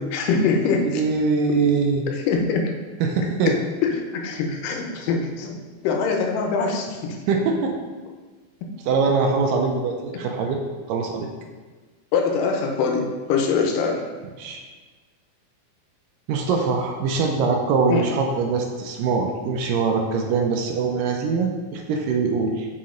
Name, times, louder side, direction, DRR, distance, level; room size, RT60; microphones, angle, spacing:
voice 1, 0.0-1.0 2.1-2.7 3.5-3.6 3.8-5.6 5.8-7.2 12.1-14.0 17.9-18.1, left 5 dB, 75° left, 2 dB, 2.3 m, -23 dB
voice 2, 0.8-2.1 3.0-3.5 7.3-7.7 8.9-10.6 10.9-11.3 14.4-14.6 16.3-22.7, right 4 dB, 80° right, 2 dB, 2.0 m, -22 dB
6.0 x 5.2 x 3.7 m, 1.4 s
omnidirectional pair, 4.3 m